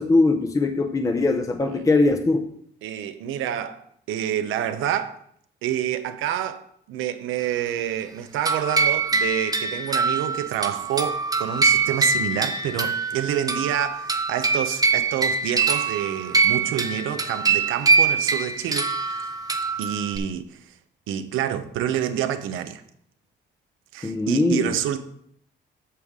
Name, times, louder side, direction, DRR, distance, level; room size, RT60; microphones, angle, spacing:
voice 1, 0.0-2.5 24.0-24.7, left 3 dB, 15° left, 0.6 m, -21 dB
voice 2, 2.8-3.8 4.1-5.2 5.6-6.6 6.9-19.2 19.8-20.4 21.1-22.8 23.9-25.0, right 10 dB, 90° right, 0.7 m, -28 dB
sound 1, 8.5-20.2, right 4 dB, 20° right, 0.8 m, -23 dB
8.5 x 6.4 x 3.6 m
cardioid pair, 90°, 20 cm